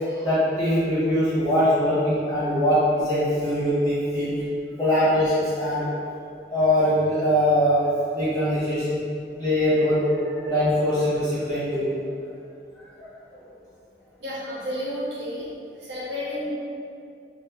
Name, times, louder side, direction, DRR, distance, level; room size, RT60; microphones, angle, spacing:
voice 1, 0.0-4.4 4.8-5.9 6.5-7.9 8.1-9.0 9.4-11.9 13.0-13.1, equal, 20° left, -13 dB, 1.1 m, -22 dB
voice 2, 14.2-15.5 15.8-16.5, left 1 dB, 70° right, -8 dB, 0.8 m, -31 dB
2.1 x 2.1 x 3.4 m, 2.3 s
head